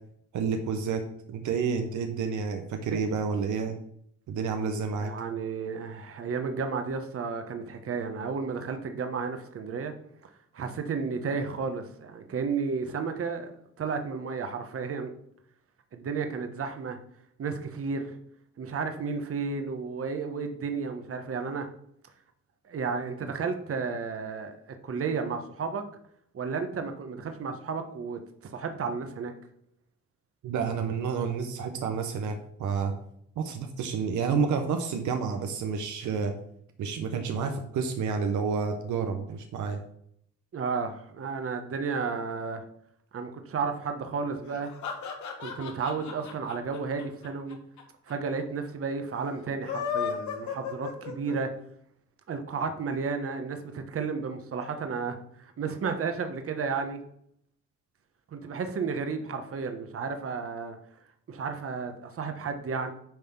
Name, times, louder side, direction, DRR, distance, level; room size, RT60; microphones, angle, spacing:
voice 1, 0.3-1.0 1.3-3.8 4.3-5.1 30.4-32.9 33.4-36.3 36.8-39.8, right 5 dB, 75° right, 5 dB, 1.0 m, -29 dB
voice 2, 5.0-9.9 10.5-13.5 13.8-15.1 15.9-17.0 17.4-18.2 18.6-21.7 22.6-25.8 26.3-28.2 28.5-29.3 40.5-42.6 43.1-44.7 45.4-47.6 48.1-51.5 52.3-57.0 58.3-60.8 61.3-62.9, right 5 dB, 50° right, 6 dB, 1.2 m, -32 dB
sound 1, 44.5-47.8 48.1-48.2 48.4-48.5 49.5-51.6, left 8 dB, 70° left, 1.6 m, -35 dB
9.2 x 3.5 x 6.0 m, 0.69 s
cardioid pair, 90°, 30 cm